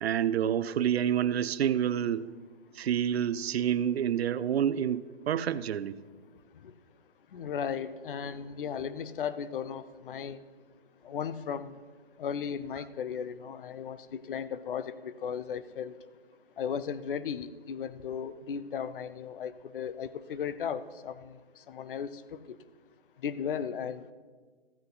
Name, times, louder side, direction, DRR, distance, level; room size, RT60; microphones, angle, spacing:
voice 1, 0.0-2.3 2.7-6.0, right 9 dB, 70° right, 16 dB, 0.6 m, -28 dB
voice 2, 7.3-10.4 11.1-11.7 12.2-15.9 16.6-21.1 21.7-22.1 23.2-24.1, left 7 dB, 55° left, 14 dB, 0.7 m, -36 dB
14.5 x 8.0 x 3.9 m, 1.4 s
hypercardioid pair, 155°, 32 cm